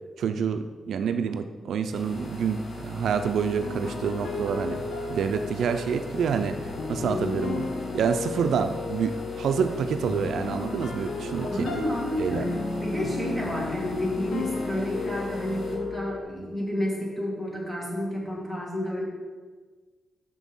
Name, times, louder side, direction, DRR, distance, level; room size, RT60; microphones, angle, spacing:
voice 1, 0.2-4.8 5.1-6.6 6.9-7.7 7.9-11.7 12.2-12.4, right 6 dB, 85° right, 8 dB, 0.5 m, -27 dB
sound 1, 1.9-15.8, left 2 dB, 45° left, 1.7 m, -40 dB
sound 2, 3.6-16.2, left 3 dB, 75° left, 1.1 m, -34 dB
voice 2, 11.4-12.5 12.8-19.1, equal, 5° left, -4 dB, 2.2 m, -30 dB
6.9 x 6.2 x 5.4 m, 1.4 s
wide cardioid pair, 125°, 0 cm